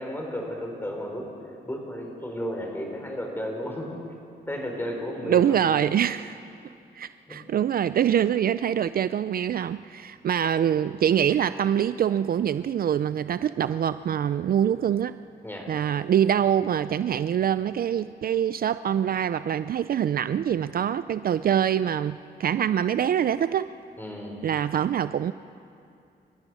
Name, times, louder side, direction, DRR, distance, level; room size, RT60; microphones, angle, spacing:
voice 1, 0.0-3.9 4.5-5.9 7.3-7.4 15.4-15.7 24.0-24.5, equal, 10° left, 1 dB, 4.7 m, -34 dB
voice 2, 5.3-6.4 6.9-15.1 15.7-23.7 24.4-25.3, right 9 dB, 55° right, 14 dB, 0.4 m, -24 dB
29.0 x 15.0 x 6.3 m, 2.6 s
cardioid pair, 95°, 18 cm